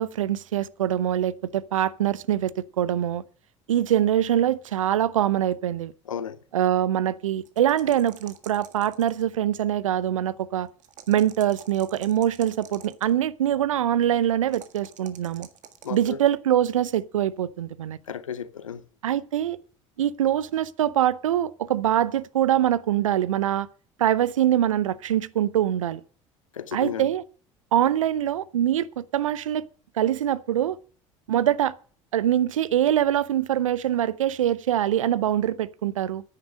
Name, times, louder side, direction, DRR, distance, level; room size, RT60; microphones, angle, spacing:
voice 1, 0.0-3.2 3.7-5.9 6.5-10.7 11.1-15.5 15.9-18.0 19.0-19.6 20.0-23.7 24.0-26.0 26.7-27.2 27.7-29.6 30.0-30.8 31.3-31.7 32.1-36.2, right 11 dB, 85° right, 0.6 m, -24 dB
voice 2, 6.1-6.4 15.8-16.2 18.1-18.8 26.5-27.1, left 8 dB, 90° left, 0.7 m, -33 dB
sound 1, 7.5-9.4 10.8-13.1 14.5-16.1, right 9 dB, 50° right, 1.7 m, -47 dB
10.0 x 9.4 x 6.3 m
hypercardioid pair, 65°, 16 cm